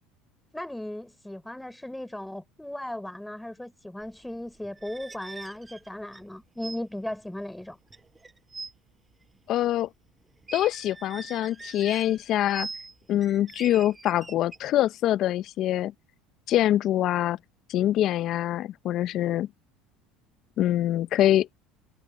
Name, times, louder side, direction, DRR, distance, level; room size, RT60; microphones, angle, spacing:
voice 1, 0.5-7.8, left 1 dB, 5° left, 3.7 m, -37 dB
sound 1, 4.6-6.3 6.6-6.8 7.1-7.3 7.9-8.7 10.4-12.9 13.2-14.6, right 3 dB, 15° right, 7.6 m, -42 dB
voice 2, 9.5-9.9 10.5-12.7 13.1-15.9 16.5-17.4 17.7-19.5 20.6-21.5, left 13 dB, 55° left, 0.6 m, -24 dB
supercardioid pair, 90°, 0 cm